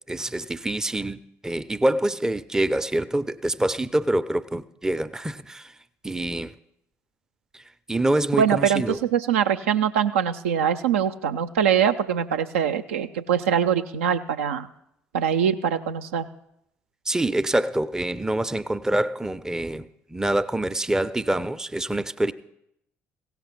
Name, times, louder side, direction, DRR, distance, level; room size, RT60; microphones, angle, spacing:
voice 1, 0.1-5.7 6.0-6.6 7.5-7.6 7.9-9.0 17.1-22.3, right 1 dB, 10° right, 0.5 m, -26 dB
voice 2, 8.4-14.7 15.1-16.3, right 8 dB, 70° right, 0.4 m, -23 dB
16.5 x 5.7 x 5.8 m
figure-of-eight pair, 50°, 7 cm